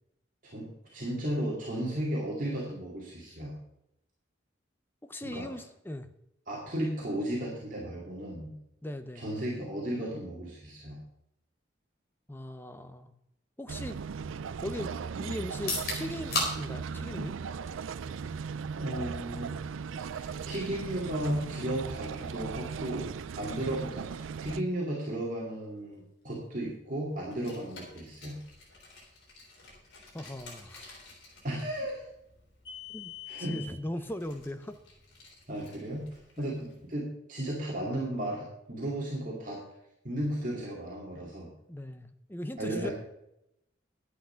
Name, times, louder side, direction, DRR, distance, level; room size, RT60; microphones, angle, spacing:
voice 1, 0.4-3.6 5.2-5.6 6.5-8.5 9.1-11.0 18.7-19.6 20.1-28.4 31.4-32.1 33.3-33.6 35.5-36.1 36.4-39.6 40.0-41.5 42.6-42.9, right 1 dB, 40° right, -4 dB, 2.3 m, -35 dB
voice 2, 5.1-6.1 8.8-9.2 12.3-13.1 13.6-14.0 14.6-17.3 23.6-23.7 30.1-30.9 32.9-33.1 33.4-34.8 36.4-36.5 41.7-42.9, left 1 dB, 10° left, 9 dB, 0.6 m, -39 dB
sound 1, 13.7-24.6, right 6 dB, 85° right, 0.4 m, -37 dB
sound 2, 15.5-29.4, left 2 dB, 50° left, 4.2 m, -42 dB
Car, 27.2-36.8, left 7 dB, 75° left, 4.0 m, -49 dB
11.0 x 8.5 x 5.7 m, 0.83 s
head